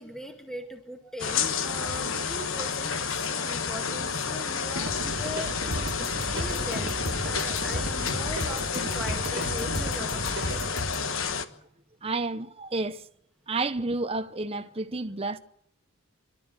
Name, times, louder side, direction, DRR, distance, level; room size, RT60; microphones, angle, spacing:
voice 1, 0.0-10.7 10.9-11.1, left 1 dB, ahead, 1.8 m, -41 dB
sound 1, 1.2-11.5, left 6 dB, 65° left, 1.2 m, -30 dB
sound 2, 4.8-10.7, right 1 dB, 50° right, 1.7 m, -35 dB
sound 3, 5.7-11.1, left 1 dB, 85° left, 3.3 m, -35 dB
voice 2, 12.0-13.1 13.5-15.4, right 3 dB, 25° right, 0.8 m, -30 dB
28.5 x 12.5 x 7.7 m
head